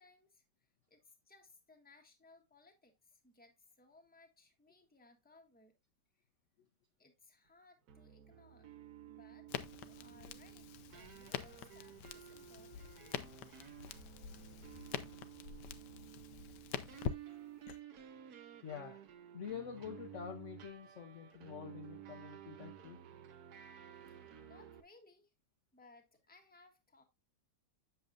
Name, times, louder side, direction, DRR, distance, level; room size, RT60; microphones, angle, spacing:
voice 1, 0.0-5.7 6.1-6.3 7.0-8.7 9.0-13.2 24.1-24.2 24.4-25.3 25.7-27.0, left 2 dB, 5° left, 1.1 m, -64 dB
sound 1, 7.9-24.8, right 10 dB, 60° right, 1.3 m, -54 dB
Crackle, 9.5-17.8, left 9 dB, 70° left, 1.2 m, -45 dB
voice 2, 18.6-19.1 19.3-23.0, left 7 dB, 55° left, 0.8 m, -47 dB
7.9 x 6.9 x 2.5 m
omnidirectional pair, 2.0 m